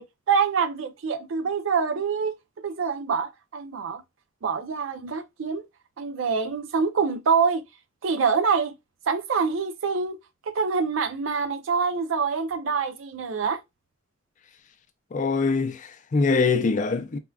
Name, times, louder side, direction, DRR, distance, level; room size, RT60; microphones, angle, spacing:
voice 1, 0.0-4.0 4.4-5.6 6.0-7.6 8.0-8.8 9.1-10.2 10.5-13.6, right 5 dB, 75° right, 0.4 m, -25 dB
voice 2, 15.1-17.2, left 4 dB, 40° left, 0.4 m, -23 dB
3.5 x 2.3 x 2.2 m
head